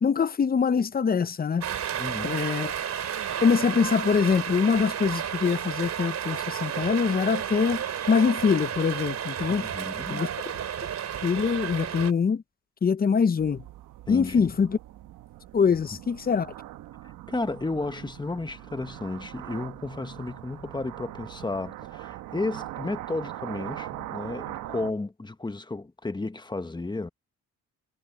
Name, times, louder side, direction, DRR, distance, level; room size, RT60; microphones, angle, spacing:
voice 1, 0.0-1.7 2.2-2.7 3.4-9.7 10.1-10.3 11.2-12.4 12.8-13.6 14.1-14.8 15.5-16.5, left 6 dB, 30° left, 0.8 m, -24 dB
sound 1, 1.6-12.1, right 9 dB, 60° right, 3.5 m, -32 dB
voice 2, 1.9-2.5 9.5-10.3 14.1-14.5 17.3-27.1, left 2 dB, 15° left, 1.4 m, -33 dB
sound 2, 13.4-24.9, right 14 dB, 90° right, 1.2 m, -41 dB
cardioid pair, 90°, 30 cm